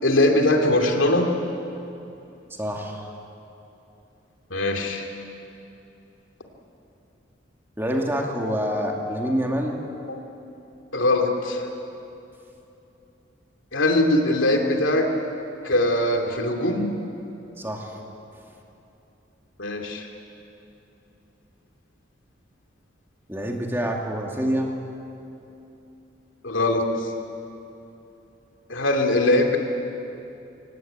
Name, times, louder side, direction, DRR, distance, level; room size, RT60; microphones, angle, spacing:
voice 1, 0.0-1.3 4.5-5.1 10.1-10.2 10.9-11.7 13.7-15.1 15.6-16.9 19.6-20.1 26.4-27.1 28.7-29.6, left 1 dB, 80° left, 3 dB, 2.7 m, -21 dB
voice 2, 2.6-3.1 7.8-9.8 17.6-18.0 23.3-24.7, equal, 10° right, 0 dB, 2.4 m, -26 dB
24.5 x 18.5 x 8.9 m, 2.9 s
head